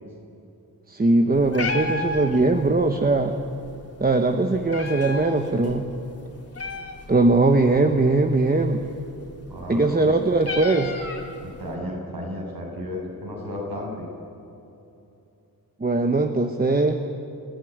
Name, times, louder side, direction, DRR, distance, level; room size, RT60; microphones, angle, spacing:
voice 1, 0.9-3.3 4.0-5.8 7.1-8.8 9.7-10.9 15.8-17.0, right 2 dB, 25° right, 5 dB, 1.1 m, -20 dB
Meow, 1.3-11.7, left 3 dB, 40° left, 2.9 m, -35 dB
voice 2, 9.5-10.1 11.4-14.1, left 1 dB, 70° right, -1 dB, 7.7 m, -33 dB
29.0 x 17.0 x 9.5 m, 2.8 s
wide cardioid pair, 140°, 37 cm